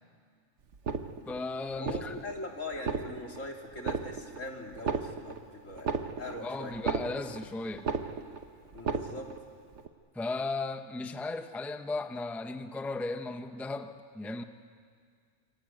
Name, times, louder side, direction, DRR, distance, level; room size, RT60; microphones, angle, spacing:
sound 1, 0.7-1.4 1.8-2.4 2.7-3.4 3.8-4.4 4.7-7.5 7.8-8.4 8.7-9.4 9.8-9.9, right 5 dB, 65° right, 1.4 m, -34 dB
voice 1, 1.3-2.2 6.4-7.9 10.1-14.4, left 3 dB, ahead, 8 dB, 0.7 m, -36 dB
voice 2, 1.8-5.9 6.2-6.7 8.7-9.3, left 2 dB, 80° left, 1 dB, 3.3 m, -41 dB
25.0 x 24.5 x 9.3 m, 2.1 s
omnidirectional pair, 1.3 m